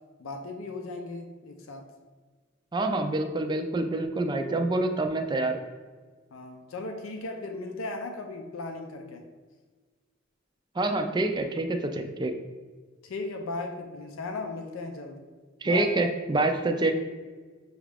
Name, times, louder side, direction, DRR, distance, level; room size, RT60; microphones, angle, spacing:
voice 1, 0.2-1.8 6.3-9.2 13.0-15.2 15.6-15.9, left 2 dB, 90° left, 4 dB, 0.5 m, -37 dB
voice 2, 2.7-5.6 10.8-12.3 15.6-16.9, right 2 dB, 20° right, 6 dB, 0.3 m, -26 dB
6.4 x 2.4 x 3.4 m, 1.4 s
head